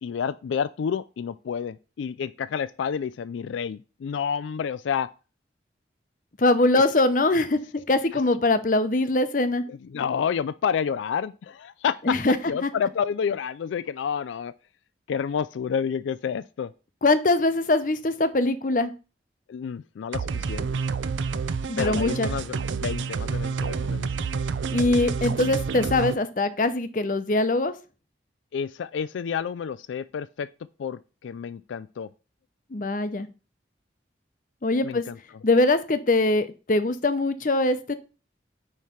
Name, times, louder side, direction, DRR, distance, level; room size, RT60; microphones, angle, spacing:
voice 1, 0.0-5.1 8.1-8.2 9.7-12.2 12.4-14.5 15.1-16.7 19.5-20.7 21.8-24.1 28.5-30.5 30.8-32.1 34.8-35.2, left 7 dB, 90° left, 0.3 m, -29 dB
voice 2, 6.4-9.6 12.1-12.4 12.6-12.7 17.0-18.9 21.7-22.3 24.7-27.7 32.7-33.3 34.6-35.0 35.4-37.9, left 2 dB, 45° left, 0.7 m, -22 dB
sound 1, 20.1-26.1, right 5 dB, 85° right, 0.5 m, -28 dB
9.1 x 3.2 x 5.8 m
head